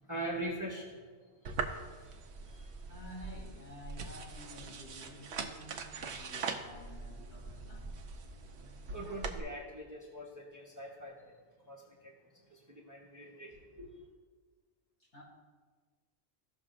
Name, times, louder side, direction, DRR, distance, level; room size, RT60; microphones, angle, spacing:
voice 1, 0.1-1.8 2.0-2.7 6.1-6.2 8.3-11.4 11.7-14.0, right 1 dB, 15° right, -3 dB, 1.0 m, -44 dB
sound 1, 1.4-9.4, right 5 dB, 75° right, 1.0 m, -42 dB
sound 2, 2.0-4.6 5.6-5.7 5.9-8.6, right 3 dB, 5° left, 1.2 m, -48 dB
voice 2, 2.9-7.9 15.0-15.2, left 1 dB, 60° left, -6 dB, 3.3 m, -51 dB
15.5 x 6.3 x 2.5 m, 1.5 s
omnidirectional pair, 1.1 m